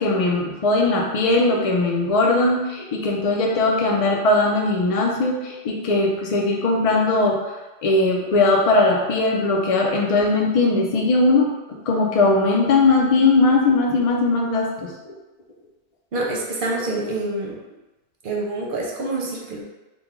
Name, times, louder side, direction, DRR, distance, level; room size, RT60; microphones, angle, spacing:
voice 1, 0.0-7.5 7.8-15.1, left 2 dB, 45° left, -1 dB, 0.6 m, -19 dB
voice 2, 16.1-17.6 18.2-19.8, right 2 dB, 60° right, -2 dB, 0.8 m, -26 dB
3.2 x 2.2 x 3.6 m, 1.1 s
omnidirectional pair, 1.0 m